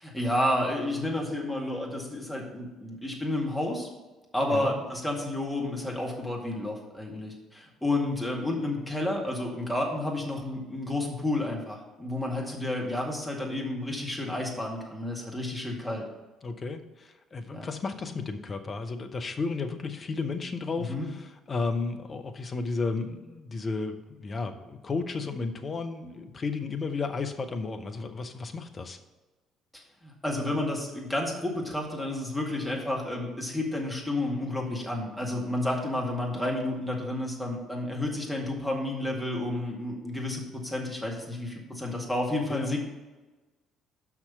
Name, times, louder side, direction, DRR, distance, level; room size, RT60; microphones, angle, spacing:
voice 1, 0.0-3.9 4.3-16.1 17.5-17.7 20.8-21.1 29.7-42.8, left 1 dB, 5° left, -2 dB, 2.1 m, -31 dB
voice 2, 16.4-29.0 42.5-42.7, left 4 dB, 35° left, 6 dB, 0.8 m, -33 dB
6.0 x 5.9 x 6.5 m, 1.2 s
figure-of-eight pair, 50°, 0 cm